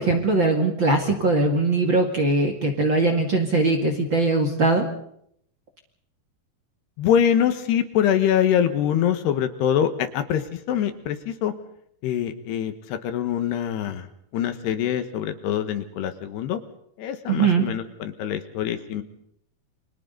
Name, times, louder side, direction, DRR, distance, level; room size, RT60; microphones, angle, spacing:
voice 1, 0.0-4.9 17.3-17.6, right 3 dB, 35° right, 3 dB, 2.2 m, -21 dB
voice 2, 7.0-11.5 12.0-14.1 14.3-16.6 17.0-19.0, left 9 dB, 80° left, 9 dB, 3.5 m, -24 dB
29.5 x 25.0 x 4.0 m, 0.69 s
omnidirectional pair, 4.8 m